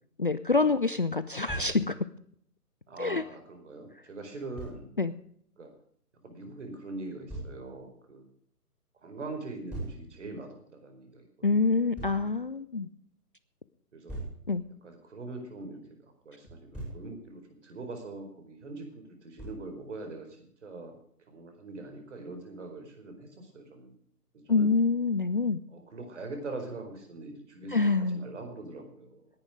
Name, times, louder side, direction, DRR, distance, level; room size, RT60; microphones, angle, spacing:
voice 1, 0.2-2.0 3.0-3.2 5.0-5.1 11.4-12.9 14.5-14.6 24.5-25.6 27.7-28.3, left 3 dB, 35° left, 13 dB, 0.6 m, -26 dB
Thump thud, 1.5-1.8 4.6-4.8 7.3-7.6 9.7-10.0 11.9-12.2 14.1-14.4 16.5-17.0 19.4-19.7, right 2 dB, ahead, 6.1 m, -39 dB
voice 2, 2.9-4.9 5.6-5.7 6.2-8.2 9.0-11.6 13.9-14.2 14.8-21.0 21.3-23.9 24.3-24.7 25.7-27.8 28.2-29.3, right 3 dB, 45° right, 5 dB, 4.8 m, -42 dB
18.5 x 10.5 x 5.0 m, 0.63 s
figure-of-eight pair, 140°, 47 cm